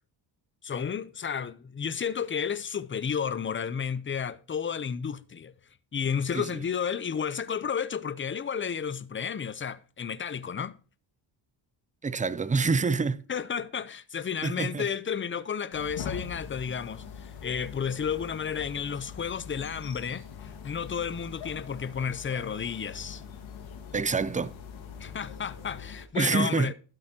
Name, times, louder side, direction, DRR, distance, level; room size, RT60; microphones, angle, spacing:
voice 1, 0.6-5.5 5.9-10.8 13.3-23.2 25.0-26.7, left 7 dB, 25° left, 0.6 m, -32 dB
voice 2, 12.0-13.2 14.4-14.9 23.9-24.6 26.1-26.7, right 4 dB, 15° right, 0.5 m, -27 dB
sound 1, 15.7-26.1, left 7 dB, 80° left, 1.9 m, -43 dB
12.5 x 7.8 x 2.9 m
cardioid pair, 110°, 46 cm